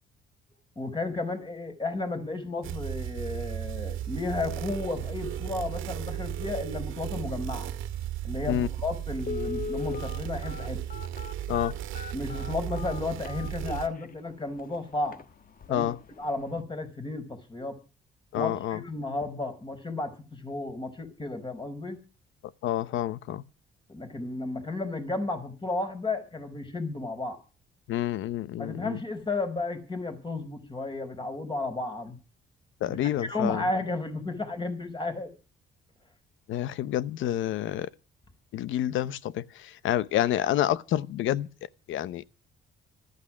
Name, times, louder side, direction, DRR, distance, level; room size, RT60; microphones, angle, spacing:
voice 1, 0.8-7.7 8.2-10.8 12.1-15.2 15.7-15.9 16.2-17.8 18.3-22.0 23.9-27.4 28.6-32.2 32.9-35.3, left 2 dB, 25° left, 4.8 m, -33 dB
sound 1, 2.6-13.9, right 11 dB, 85° right, 1.7 m, -35 dB
Telephone, 8.5-8.6 9.2-14.1 14.6-14.7 15.1-15.2 15.6-15.9 16.2-16.3, left 6 dB, 45° left, 1.4 m, -38 dB
voice 2, 18.3-18.8 22.6-23.4 27.9-29.0 32.8-33.6 36.5-37.9 38.5-39.4 39.8-41.5 41.9-42.2, left 12 dB, 80° left, 0.9 m, -28 dB
14.5 x 13.5 x 6.3 m
cardioid pair, 90°, 20 cm